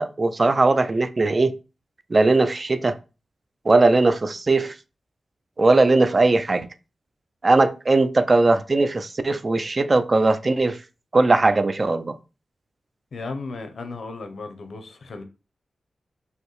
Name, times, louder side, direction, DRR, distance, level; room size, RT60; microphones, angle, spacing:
voice 1, 0.0-1.5 2.1-3.0 3.7-4.7 5.6-6.7 7.4-10.8 11.1-12.1, right 3 dB, 35° right, 0.4 m, -19 dB
voice 2, 13.1-15.2, left 3 dB, 75° left, 0.7 m, -35 dB
4.8 x 2.7 x 3.1 m
wide cardioid pair, 90°, 0 cm